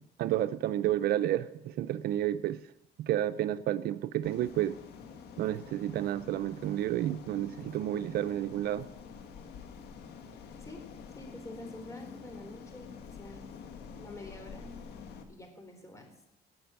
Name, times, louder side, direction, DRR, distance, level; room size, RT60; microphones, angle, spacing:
voice 1, 0.2-2.6 3.0-4.8 5.4-8.9, right 12 dB, 65° right, 13 dB, 0.6 m, -30 dB
sound 1, 4.2-15.2, left 6 dB, 75° left, 1.8 m, -48 dB
voice 2, 11.1-13.5 13.9-14.8 15.3-16.1, left 1 dB, 20° left, 4 dB, 4.0 m, -47 dB
17.0 x 6.0 x 9.1 m, 0.83 s
cardioid pair, 110°, 17 cm